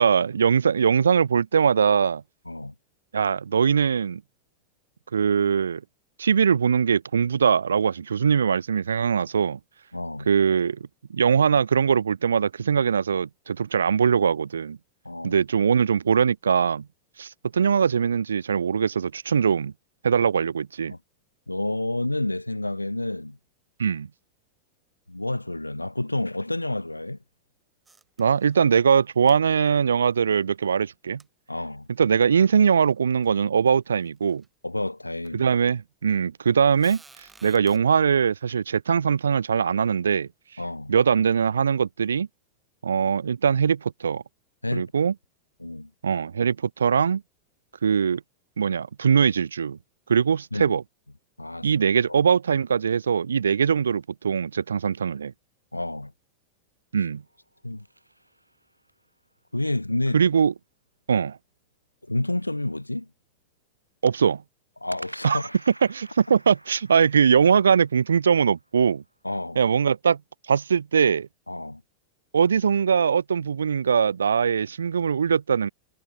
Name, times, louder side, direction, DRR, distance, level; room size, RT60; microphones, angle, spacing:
voice 1, 0.0-2.2 3.1-4.2 5.1-5.8 6.2-9.6 10.3-10.8 11.1-14.8 15.2-16.8 17.2-19.7 20.0-20.9 23.8-24.1 28.2-31.2 32.0-34.4 35.3-40.3 40.9-42.3 42.8-44.2 44.7-45.1 46.0-47.2 47.8-48.2 48.6-49.8 50.1-50.8 51.6-55.3 56.9-57.2 60.1-60.5 61.1-61.4 64.0-64.4 65.2-65.4 65.9-69.0 69.5-70.2 70.5-71.3 72.3-75.7, right 7 dB, 70° right, 1.0 m, -21 dB
voice 2, 9.9-10.3 15.0-15.4 20.9-21.0 21.5-23.4 25.1-27.2 31.5-31.9 34.6-35.5 40.6-40.9 44.6-44.9 45.6-45.9 50.5-50.8 51.4-51.7 55.7-56.1 57.6-57.8 59.5-60.2 62.1-63.1 64.8-65.4 69.2-69.6 71.5-71.8, left 2 dB, 85° left, 1.5 m, -29 dB
sound 1, 27.9-28.7 28.9-29.0 29.3-29.4 31.2-31.3 32.1-32.2 32.9-33.0 33.2-33.5 34.1-34.5 35.3-35.4 36.8-37.8, right 4 dB, 10° right, 7.3 m, -52 dB
sound 2, 57.2-59.1 64.9-69.2, right 1 dB, 85° right, 7.4 m, -46 dB
figure-of-eight pair, 90°, 0 cm